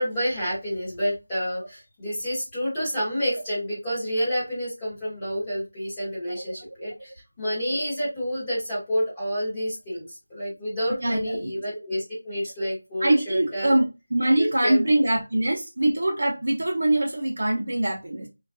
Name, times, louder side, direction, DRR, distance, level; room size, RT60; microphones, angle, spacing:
voice 1, 0.0-13.8 14.4-14.8, equal, 10° left, 0.8 m, -29 dB
voice 2, 11.0-11.5 13.0-13.8 14.1-18.3, right 1 dB, 40° right, 0.7 m, -23 dB
3.1 x 2.3 x 2.5 m
figure-of-eight pair, 180°, 0 cm